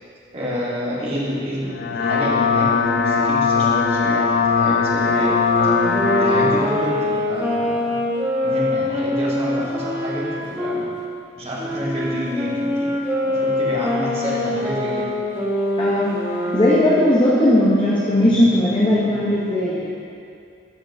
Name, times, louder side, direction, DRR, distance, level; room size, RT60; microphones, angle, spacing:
voice 1, 0.3-2.7 3.0-5.4 5.6-8.0 8.4-10.9 11.3-15.1, equal, 35° right, -6 dB, 1.5 m, -29 dB
sound 1, 1.7-6.6, left 5 dB, 55° left, 0.4 m, -19 dB
Wind instrument woodwind instrument, 5.0-10.8 11.6-17.0, left 1 dB, 10° right, 1.1 m, -24 dB
voice 2, 15.8-16.2 16.5-19.9, left 1 dB, 25° left, -7 dB, 0.8 m, -17 dB
12.5 x 5.2 x 2.7 m, 2.4 s
head